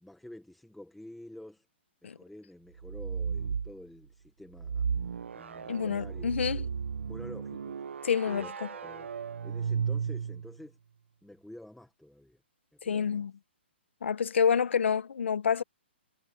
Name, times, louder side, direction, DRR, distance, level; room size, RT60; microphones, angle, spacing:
voice 1, 0.0-1.7 2.0-4.9 5.3-6.7 7.0-7.7 8.3-9.1 9.4-10.8 11.2-12.4 12.7-13.2, left 1 dB, ahead, 1.2 m, -49 dB
sound 1, 2.8-3.7 4.6-10.6, right 6 dB, 85° right, 0.6 m, -34 dB
voice 2, 5.7-6.7 8.0-8.7 12.8-13.3 14.0-15.6, left 7 dB, 75° left, 1.0 m, -28 dB
hypercardioid pair, 170°, 6 cm